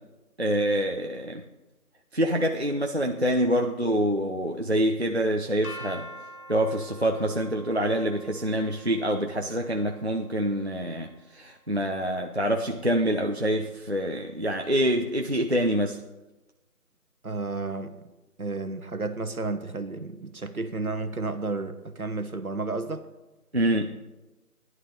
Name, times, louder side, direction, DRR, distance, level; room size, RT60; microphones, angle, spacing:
voice 1, 0.4-1.4 2.1-6.1 6.5-16.0 23.5-24.0, right 1 dB, 45° right, 0.6 m, -26 dB
sound 1, 5.6-11.6, equal, 70° left, 2.8 m, -46 dB
voice 2, 17.2-18.0 18.4-23.0, right 3 dB, 65° right, 1.2 m, -32 dB
15.5 x 11.0 x 3.8 m
figure-of-eight pair, 180°, 46 cm